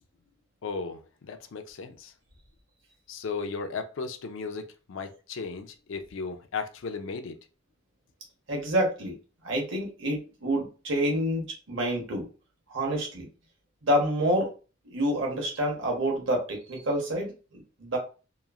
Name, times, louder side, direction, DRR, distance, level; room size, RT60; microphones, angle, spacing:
voice 1, 0.6-2.1 3.1-7.4, left 4 dB, 65° left, 0.4 m, -36 dB
voice 2, 8.5-9.1 9.4-12.3 12.7-13.3 13.8-14.5 14.9-17.3 17.8-18.0, equal, 65° right, 1.0 m, -27 dB
3.0 x 2.4 x 2.3 m
head